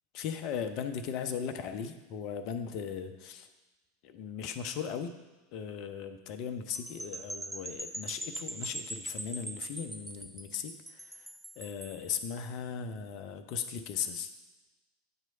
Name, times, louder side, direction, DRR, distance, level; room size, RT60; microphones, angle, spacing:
voice 1, 0.1-3.5 4.0-5.2 5.5-11.3 11.6-14.3, left 7 dB, 45° left, 9 dB, 0.6 m, -38 dB
sound 1, 6.7-12.0, right 1 dB, 5° right, 0.3 m, -42 dB
8.9 x 3.1 x 5.4 m, 1.1 s
figure-of-eight pair, 80°, 0 cm